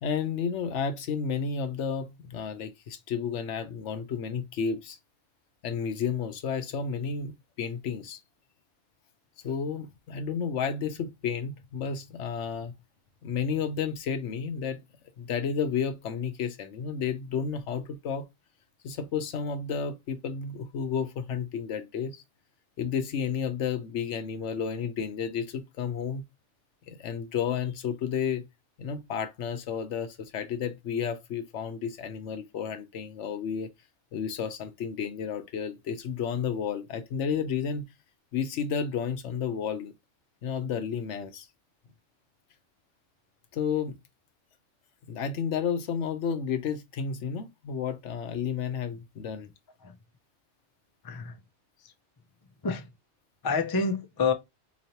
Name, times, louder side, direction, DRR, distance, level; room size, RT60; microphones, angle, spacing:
voice 1, 0.0-5.0 5.6-8.2 9.4-12.7 13.2-14.8 15.2-18.2 18.8-22.2 22.8-26.2 26.9-28.4 28.8-33.7 34.1-37.8 38.3-39.9 40.4-41.5 43.5-43.9 45.1-49.5, left 6 dB, 80° left, 1.0 m, -31 dB
voice 2, 51.0-51.4 51.8-51.9 52.6-52.9 53.4-54.3, left 4 dB, 30° left, 0.4 m, -28 dB
3.9 x 3.1 x 2.8 m
omnidirectional pair, 1.2 m